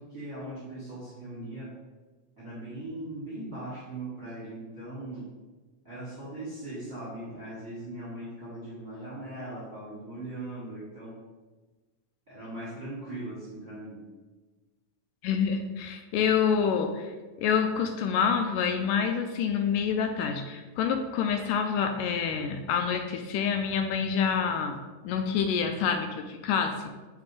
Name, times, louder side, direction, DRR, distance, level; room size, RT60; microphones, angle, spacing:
voice 1, 0.0-1.7 2.4-5.3 5.8-11.2 12.3-14.0, right 1 dB, 40° right, -9 dB, 1.3 m, -39 dB
voice 2, 15.2-17.1 17.4-24.8 25.0-26.8, left 7 dB, 80° left, 6 dB, 2.0 m, -27 dB
6.1 x 3.2 x 4.9 m, 1.3 s
omnidirectional pair, 3.9 m